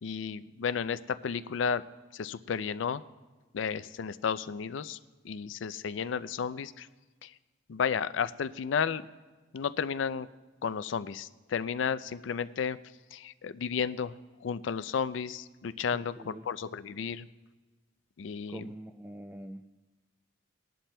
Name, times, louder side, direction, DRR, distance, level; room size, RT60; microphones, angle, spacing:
voice 1, 0.0-1.8 2.1-3.0 3.5-5.0 5.2-6.9 7.2-7.3 7.7-9.1 9.5-10.3 10.6-12.8 13.1-14.1 14.4-17.2 18.2-18.7, left 6 dB, 75° left, 14 dB, 0.4 m, -33 dB
voice 2, 15.9-16.5 18.5-19.7, right 1 dB, 10° right, 6 dB, 0.3 m, -44 dB
20.0 x 11.5 x 2.2 m, 1.3 s
head